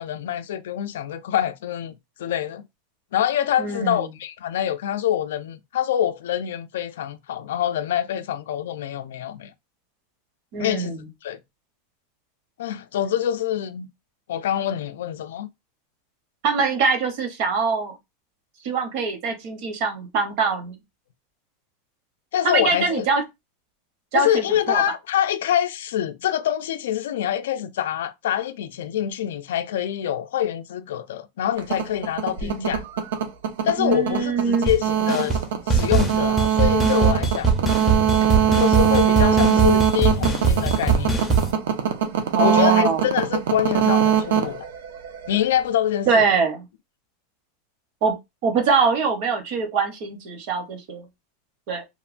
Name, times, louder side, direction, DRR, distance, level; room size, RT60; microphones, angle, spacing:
voice 1, 0.0-1.9 2.2-2.7 3.1-9.5 10.6-10.9 11.2-11.4 12.6-13.9 14.3-15.5 22.3-23.1 24.1-32.8 33.6-35.4 35.7-37.5 38.5-41.2 42.4-44.7 45.3-46.2, left 11 dB, 85° left, 0.3 m, -25 dB
voice 2, 3.6-4.1 10.5-11.0 16.4-17.9 18.6-20.8 22.4-23.2 24.1-24.8 32.4-32.7 33.8-34.7 42.3-43.0 46.1-46.6 48.0-48.2 48.4-51.1 51.7-51.8, right 5 dB, 40° right, 0.7 m, -23 dB
sound 1, 31.6-45.4, right 9 dB, 85° right, 0.6 m, -22 dB
sound 2, 34.7-34.8 35.1-35.4 35.7-41.5, right 4 dB, ahead, 0.5 m, -22 dB
3.0 x 2.2 x 2.4 m
supercardioid pair, 175°, 0 cm